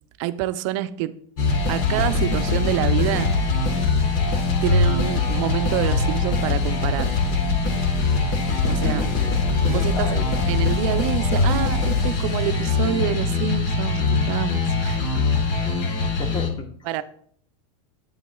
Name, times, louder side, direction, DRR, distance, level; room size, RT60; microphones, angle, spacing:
voice 1, 0.2-1.1 1.7-3.3 4.6-7.1 8.3-8.4 8.7-9.0 9.7-15.4 16.9-17.0, right 12 dB, 55° right, 0.5 m, -27 dB
sound 1, 1.4-16.5, left 3 dB, 45° left, 1.4 m, -22 dB
voice 2, 8.7-9.4 9.7-10.3 16.0-16.7, left 2 dB, 25° left, 1.1 m, -32 dB
9.1 x 8.7 x 2.3 m
supercardioid pair, 135°, 19 cm